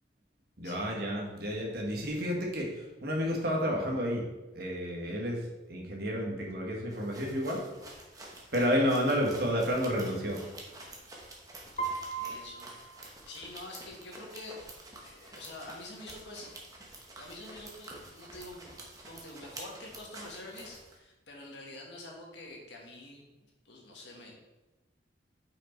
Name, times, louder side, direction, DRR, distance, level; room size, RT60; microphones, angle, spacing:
voice 1, 0.6-4.3 4.5-7.6 8.5-10.4, equal, 55° right, -1 dB, 1.4 m, -31 dB
sound 1, 6.9-21.0, right 2 dB, 20° right, 1.0 m, -49 dB
Piano, 11.8-13.8, right 5 dB, 35° left, 0.7 m, -38 dB
voice 2, 12.2-12.7 13.0-14.6 15.0-16.6 17.2-18.7 19.0-23.2 23.6-24.4, left 2 dB, 70° left, 0 dB, 1.5 m, -46 dB
5.9 x 4.8 x 4.5 m, 1.1 s
head